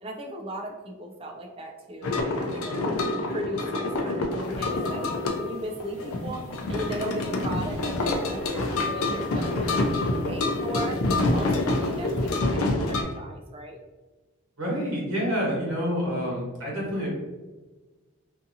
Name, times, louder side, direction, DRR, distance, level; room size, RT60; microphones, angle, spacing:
voice 1, 0.0-11.0 11.3-13.8, equal, 25° right, 2 dB, 0.3 m, -37 dB
sound 1, 2.0-13.0, left 2 dB, 80° left, 0.4 m, -27 dB
sound 2, 4.4-12.4, left 1 dB, 35° left, 1.2 m, -48 dB
voice 2, 14.6-17.1, equal, 70° right, -4 dB, 1.1 m, -28 dB
2.6 x 2.6 x 2.6 m, 1.2 s
head